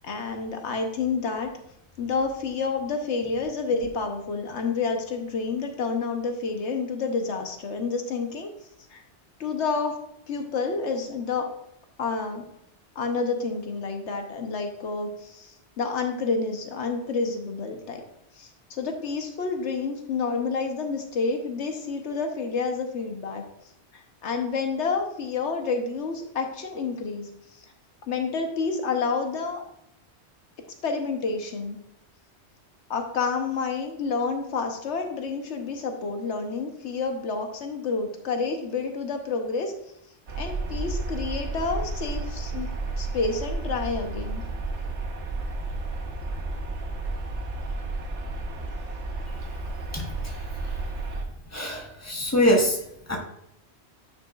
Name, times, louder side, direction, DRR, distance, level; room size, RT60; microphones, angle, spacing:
voice 1, 0.0-1.5 2.0-8.5 8.9-9.0 9.4-10.0 10.3-11.5 12.0-12.5 12.9-18.0 18.4-23.4 23.9-27.3 27.6-27.7 28.1-29.6 30.8-31.8 32.9-39.7 40.4-42.7 43.0-44.4, left 4 dB, 85° left, 5 dB, 1.2 m, -29 dB
sound 1, 40.3-51.2, right 2 dB, 85° right, 1.3 m, -32 dB
voice 2, 49.9-50.4 51.5-52.8 53.1-53.2, equal, 15° left, -1 dB, 1.4 m, -24 dB
9.6 x 5.7 x 2.4 m, 0.77 s
omnidirectional pair, 1.1 m